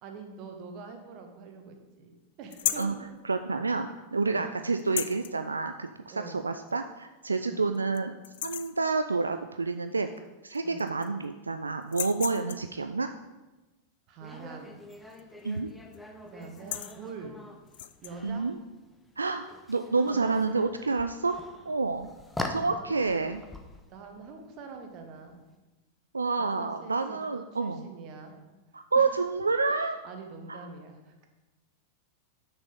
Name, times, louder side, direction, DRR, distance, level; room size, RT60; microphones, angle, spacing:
voice 1, 0.0-3.1 4.2-4.5 6.1-6.4 7.4-7.6 10.6-10.9 12.3-12.6 14.1-14.8 16.2-17.4 18.0-18.5 20.0-20.3 22.7-23.2 23.8-25.4 26.4-28.5 28.9-29.1 29.7-31.3, right 4 dB, 40° right, 4 dB, 1.3 m, -45 dB
sound 1, 2.5-3.0 4.8-5.3 6.7-6.8 7.3-7.4 7.7-8.0 8.2-8.8 10.2-10.3 10.5-11.2 11.8-12.7 15.1-15.4 15.7-16.0 16.4-17.0 17.7-18.1, left 12 dB, 55° left, 0.4 m, -35 dB
voice 2, 3.2-8.1 8.4-10.1 10.4-13.1 15.4-15.7 18.2-18.6 19.2-21.4 21.6-22.1 22.5-23.4 26.1-27.9 28.7-30.0 30.5-30.7, right 4 dB, 80° right, 8 dB, 0.3 m, -29 dB
sound 2, 14.2-25.5, left 1 dB, 5° left, 0.8 m, -44 dB
6.5 x 6.1 x 5.2 m, 1.1 s
figure-of-eight pair, 90°, 0 cm